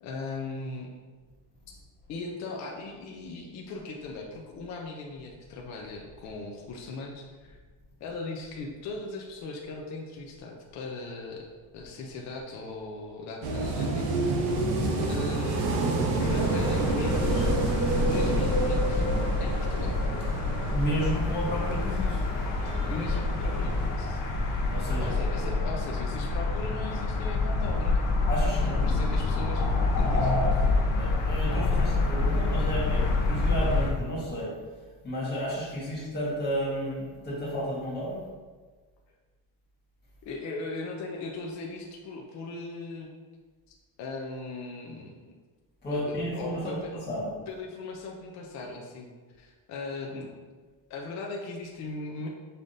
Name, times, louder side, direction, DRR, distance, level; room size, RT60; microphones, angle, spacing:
voice 1, 0.0-0.9 2.1-7.6 8.0-11.5 11.7-14.8 15.0-15.7 16.2-19.1 19.4-20.0 22.9-24.2 25.0-28.0 28.5-29.6 30.0-30.3 40.2-43.1 44.0-45.3 45.9-46.9 47.5-49.1 49.4-50.4 50.9-52.3, left 3 dB, 45° left, 0 dB, 0.5 m, -38 dB
sound 1, 13.4-23.9, right 2 dB, 90° right, 0.8 m, -29 dB
voice 2, 14.5-14.9 20.7-22.2 24.7-25.1 28.3-29.0 30.9-34.5 35.0-38.2 45.8-47.3, equal, 25° left, -7 dB, 1.4 m, -32 dB
sound 2, 16.2-33.9, left 3 dB, 80° left, 0.8 m, -27 dB
5.5 x 3.3 x 2.6 m, 1.4 s
cardioid pair, 175°, 39 cm